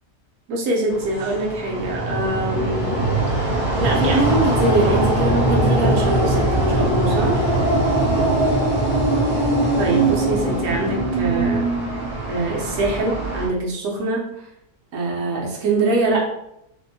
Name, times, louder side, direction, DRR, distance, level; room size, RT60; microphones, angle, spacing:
voice 1, 0.5-3.0 3.8-7.5 9.8-11.7 12.3-14.5 14.9-16.3, right 2 dB, 75° right, -2 dB, 1.3 m, -23 dB
Urban Night, 0.9-13.5, right 1 dB, 25° left, 0.7 m, -21 dB
3.5 x 2.7 x 2.7 m, 0.81 s
omnidirectional pair, 1.6 m